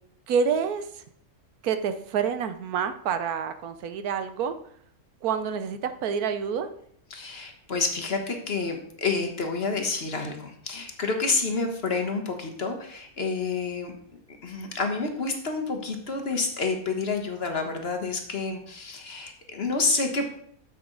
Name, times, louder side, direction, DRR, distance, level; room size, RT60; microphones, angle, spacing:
voice 1, 0.3-1.0 1.6-4.6 5.2-6.7, right 6 dB, 90° right, 10 dB, 1.2 m, -28 dB
voice 2, 7.1-13.9 14.4-20.3, left 4 dB, 45° left, 4 dB, 1.3 m, -29 dB
9.4 x 7.2 x 3.9 m, 0.64 s
omnidirectional pair, 1.5 m